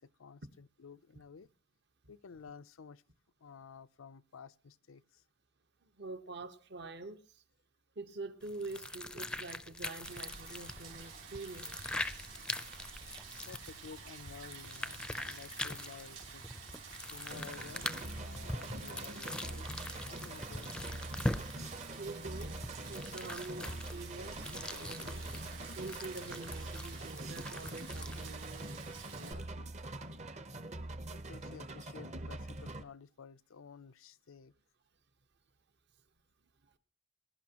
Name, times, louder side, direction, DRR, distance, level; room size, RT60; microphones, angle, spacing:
voice 1, 0.0-1.5 2.1-3.0 3.4-5.2 13.5-16.4 17.1-17.9 18.2-19.7 20.1-21.1 31.1-34.5, left 6 dB, 85° left, 0.5 m, -53 dB
voice 2, 5.8-7.4 7.9-11.8 22.0-22.6 22.9-25.3 25.8-29.5, right 3 dB, 55° right, 1.1 m, -46 dB
sound 1, 8.4-28.4, left 1 dB, 5° left, 0.5 m, -43 dB
Rain, 10.0-29.3, right 5 dB, 75° right, 4.3 m, -50 dB
sound 2, 17.3-32.8, right 1 dB, 35° right, 0.8 m, -44 dB
21.5 x 11.0 x 2.9 m
head